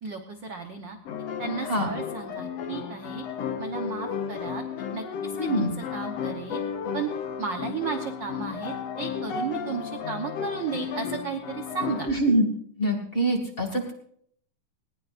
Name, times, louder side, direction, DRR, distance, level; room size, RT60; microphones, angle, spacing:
voice 1, 0.0-1.0 1.4-3.2 3.6-4.6 4.9-6.6 6.9-7.1 7.4-12.1, right 5 dB, 85° right, 5 dB, 1.0 m, -34 dB
sound 1, 1.1-12.1, left 7 dB, 65° left, 2.0 m, -33 dB
voice 2, 5.4-5.8 12.1-12.4 12.8-13.9, right 1 dB, 20° left, 4 dB, 1.8 m, -24 dB
19.5 x 19.5 x 2.6 m, 0.64 s
omnidirectional pair, 3.7 m